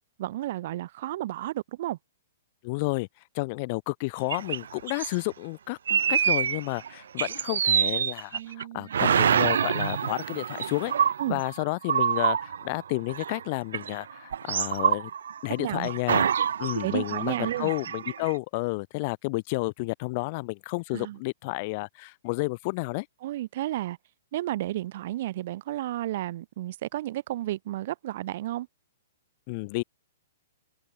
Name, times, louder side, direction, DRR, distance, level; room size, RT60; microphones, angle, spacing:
voice 1, 0.2-2.0 8.3-8.9 11.2-11.4 15.6-15.9 16.8-17.7 20.9-21.2 23.2-24.0 24.3-28.7, right 14 dB, 35° right, 0.9 m, -32 dB
voice 2, 2.6-3.1 3.3-10.9 11.3-15.1 15.4-16.3 16.6-23.1 29.5-29.8, left 26 dB, 25° left, 1.0 m, -31 dB
sound 1, 4.3-5.2 5.9-6.9 7.2-8.6 8.9-13.4 13.7-15.5 15.8-18.4, right 8 dB, 65° right, 0.8 m, -26 dB
open air
hypercardioid pair, 180°, 0 cm